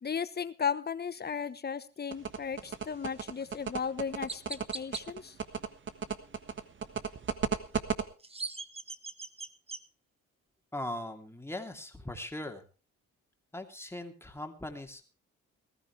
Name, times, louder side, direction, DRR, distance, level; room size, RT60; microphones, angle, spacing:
voice 1, 0.0-5.4, left 6 dB, 35° left, 13 dB, 1.2 m, -35 dB
sound 1, 2.1-8.0, right 6 dB, 40° right, 1.5 m, -33 dB
Chirp tweet, 3.4-3.5 4.3-5.0 8.0-9.8, right 3 dB, 20° right, 1.1 m, -40 dB
voice 2, 10.7-12.6 13.5-15.0, left 1 dB, 10° left, 5 dB, 2.7 m, -40 dB
19.5 x 14.0 x 3.4 m, 0.32 s
cardioid pair, 90°, 30 cm